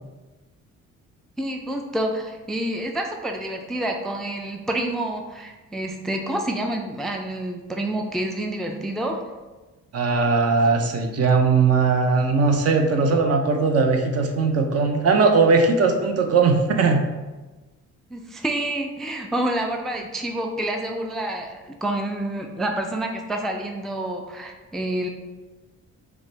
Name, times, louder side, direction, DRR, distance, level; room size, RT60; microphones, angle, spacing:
voice 1, 1.4-9.2 18.1-25.1, right 1 dB, ahead, 3 dB, 0.3 m, -28 dB
voice 2, 9.9-17.0, right 4 dB, 55° right, 4 dB, 0.6 m, -19 dB
4.8 x 2.2 x 3.9 m, 1.2 s
cardioid pair, 90°, 30 cm